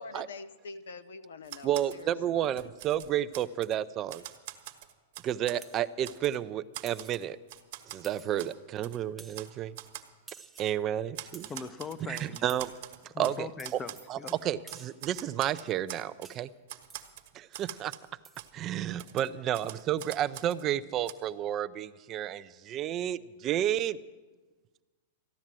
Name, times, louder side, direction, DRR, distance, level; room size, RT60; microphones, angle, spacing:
voice 1, 0.0-2.5, left 4 dB, 80° left, 0.8 m, -45 dB
Typewriter, 1.4-2.0 2.4-3.8 4.1-5.6 6.0-6.4 6.7-8.0 8.4-8.5 8.8-9.0 9.3-9.5 9.8-10.1 10.6-10.7 11.1-13.4 13.6-14.4 14.7-16.4 16.7-18.1 18.4-18.5 19.0-20.6 21.1-21.2, right 13 dB, 55° right, 1.4 m, -44 dB
voice 2, 1.6-4.2 5.2-7.4 7.9-9.8 10.6-11.5 12.1-12.7 13.2-13.5 14.1-14.2 14.4-16.5 17.3-17.9 18.5-24.0, right 11 dB, 35° right, 0.5 m, -31 dB
sound 1, 5.6-5.9 6.9-7.3 8.0-8.6 9.2-9.5 10.3-10.8 11.3-11.7 12.5-12.8 13.6-14.1 14.7-15.1 16.2-16.5 16.9-17.2 18.2-18.5, right 4 dB, 15° right, 0.9 m, -53 dB
voice 3, 11.5-12.5 13.1-14.3, left 5 dB, 20° left, 0.7 m, -41 dB
14.0 x 10.5 x 7.5 m
hypercardioid pair, 120°, 0 cm